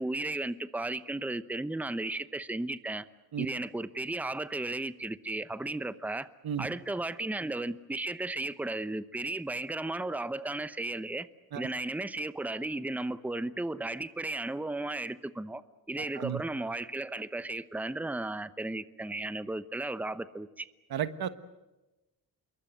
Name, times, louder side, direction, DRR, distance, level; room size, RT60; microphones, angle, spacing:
voice 1, 0.0-3.0 3.4-6.3 6.6-11.3 11.6-15.6 15.9-20.7, right 2 dB, 5° right, 14 dB, 0.8 m, -35 dB
voice 2, 16.0-16.4 20.9-21.3, right 9 dB, 80° right, 12 dB, 1.4 m, -33 dB
27.5 x 23.0 x 7.8 m, 1.0 s
wide cardioid pair, 120°, 36 cm